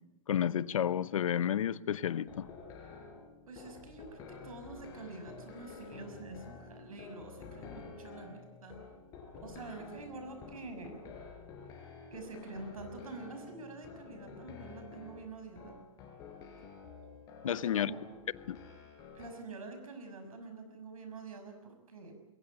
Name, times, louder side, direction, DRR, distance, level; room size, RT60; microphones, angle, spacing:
voice 1, 0.3-2.5 17.4-17.9 18.5-18.6, left 9 dB, 75° left, 0.8 m, -31 dB
sound 1, 2.3-19.3, left 5 dB, 20° left, 4.4 m, -50 dB
voice 2, 3.5-8.8 9.4-11.0 12.1-15.8 17.4-18.0 19.1-22.1, right 3 dB, 85° right, 6.2 m, -47 dB
21.5 x 18.0 x 8.8 m
hypercardioid pair, 160°, 18 cm